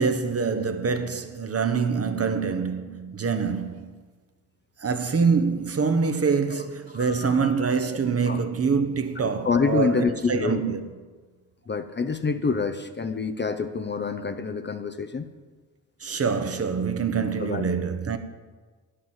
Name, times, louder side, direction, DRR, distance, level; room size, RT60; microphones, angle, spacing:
voice 1, 0.0-3.9 4.8-10.8 16.0-18.2, right 5 dB, 35° right, 1.0 m, -25 dB
voice 2, 6.9-7.6 8.3-8.4 9.4-10.6 11.7-15.3 17.4-17.6, left 5 dB, 25° left, 0.7 m, -27 dB
8.9 x 6.7 x 7.4 m
supercardioid pair, 50°, 41 cm